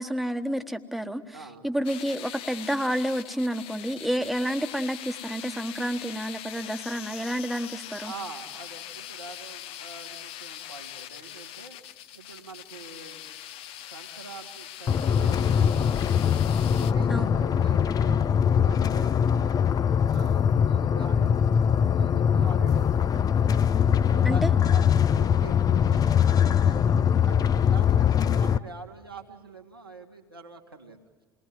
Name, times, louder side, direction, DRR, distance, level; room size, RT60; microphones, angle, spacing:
voice 1, 0.0-8.1 17.1-17.4 24.2-24.5, equal, ahead, 6 dB, 1.4 m, -30 dB
voice 2, 1.3-1.7 8.0-11.8 12.1-13.3 13.8-16.3 16.8-19.6 20.0-23.3 23.8-26.8 27.2-31.0, right 4 dB, 90° right, 0 dB, 2.0 m, -44 dB
sound 1, 1.8-16.9, left 11 dB, 50° left, 0.9 m, -42 dB
sound 2, 14.9-28.6, left 8 dB, 30° left, 0.6 m, -22 dB
28.0 x 20.0 x 7.6 m, 1.4 s
figure-of-eight pair, 60°, 12 cm